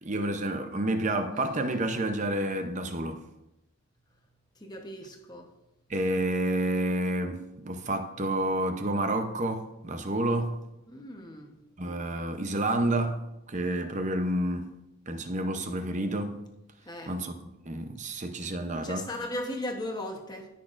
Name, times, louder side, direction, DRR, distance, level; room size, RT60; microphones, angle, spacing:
voice 1, 0.0-3.2 5.9-10.6 11.8-14.7 15.1-16.4 17.1-17.3 17.7-19.1, right 1 dB, 35° right, 0.7 m, -29 dB
voice 2, 4.6-5.5 10.9-11.5 16.9-17.2 18.1-18.2 18.8-20.5, left 1 dB, 20° left, 1.0 m, -37 dB
16.0 x 6.2 x 2.6 m
head